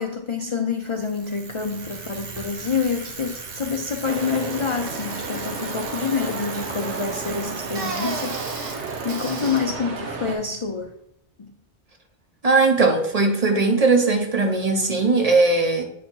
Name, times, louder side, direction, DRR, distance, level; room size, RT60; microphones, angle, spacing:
voice 1, 0.0-10.9 11.4-11.5, left 5 dB, 45° left, 4 dB, 0.4 m, -27 dB
Bicycle, 0.8-10.9, right 4 dB, 60° right, 1.1 m, -36 dB
sound 1, 4.0-10.3, right 4 dB, 85° right, 1.2 m, -33 dB
voice 2, 12.4-15.8, right 3 dB, 40° right, 3 dB, 0.8 m, -19 dB
8.4 x 2.8 x 4.4 m, 0.74 s
omnidirectional pair, 1.1 m